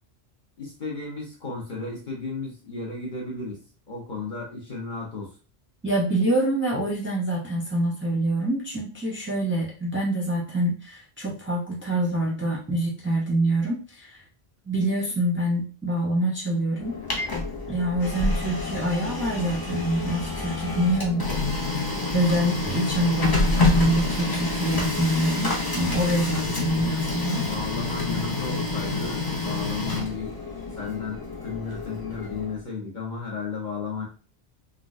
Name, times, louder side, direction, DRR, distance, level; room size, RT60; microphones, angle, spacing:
voice 1, 0.6-5.3 26.4-26.9 27.3-30.3 30.8-34.0, left 4 dB, 50° left, -4 dB, 1.2 m, -34 dB
voice 2, 5.8-14.1 14.7-16.9 17.7-21.7 22.1-27.4, right 1 dB, 15° right, -4 dB, 0.7 m, -26 dB
Printer, 16.8-32.6, left 2 dB, 25° left, 0.6 m, -27 dB
3.8 x 2.2 x 2.5 m, 0.36 s
omnidirectional pair, 1.1 m